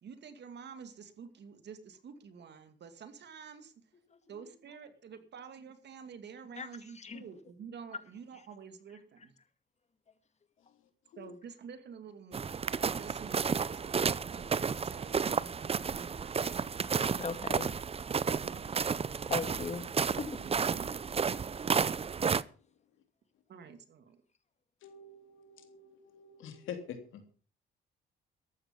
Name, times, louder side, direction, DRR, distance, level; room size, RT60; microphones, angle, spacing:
voice 1, 0.0-3.8 4.3-9.3 11.2-16.7 18.4-18.9 20.4-20.9 23.5-24.2, right 6 dB, 60° right, 2.5 m, -49 dB
sound 1, 12.3-22.4, right 6 dB, 30° right, 0.6 m, -32 dB
voice 2, 17.2-17.7 19.3-19.9 20.2-20.4, left 4 dB, 35° left, 2.1 m, -38 dB
voice 3, 22.0-22.7 24.8-27.3, left 7 dB, 80° left, 3.4 m, -47 dB
14.0 x 12.0 x 5.4 m
cardioid pair, 90°, 20 cm